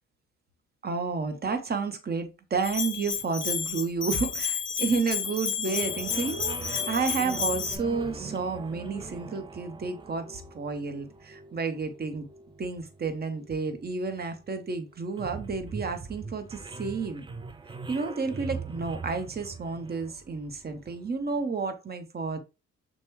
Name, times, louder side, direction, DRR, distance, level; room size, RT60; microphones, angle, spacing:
voice 1, 0.8-12.3 12.6-17.2 17.9-22.4, right 4 dB, 30° right, 0.9 m, -31 dB
Bell, 2.6-7.8, left 7 dB, 40° left, 0.9 m, -31 dB
sound 1, 5.6-21.1, right 4 dB, 15° right, 0.5 m, -42 dB
6.6 x 2.2 x 3.1 m
cardioid pair, 90°, 30 cm